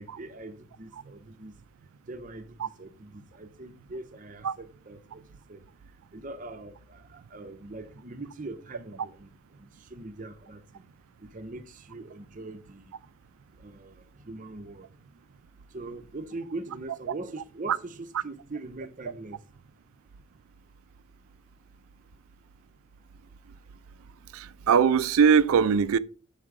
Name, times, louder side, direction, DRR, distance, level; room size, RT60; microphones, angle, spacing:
voice 1, 0.0-1.6 2.1-5.2 5.5-5.6 6.1-10.8 11.2-12.9 13.6-14.9 15.7-19.4, right 2 dB, 35° right, 0.6 m, -42 dB
voice 2, 24.3-26.0, right 6 dB, 75° right, 0.4 m, -21 dB
7.2 x 3.7 x 4.7 m
head